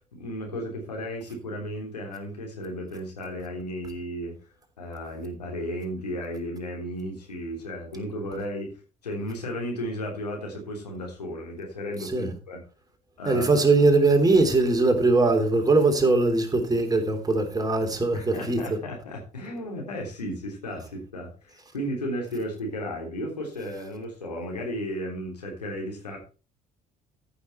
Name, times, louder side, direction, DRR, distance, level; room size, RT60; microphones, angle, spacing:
voice 1, 0.1-4.3 4.8-8.8 9.0-12.6 13.2-13.6 18.1-26.2, equal, 80° left, 3.4 m, -34 dB
voice 2, 12.0-12.3 13.2-18.8, right 3 dB, 20° right, 3.4 m, -21 dB
14.0 x 6.8 x 4.4 m
figure-of-eight pair, 55°, 20 cm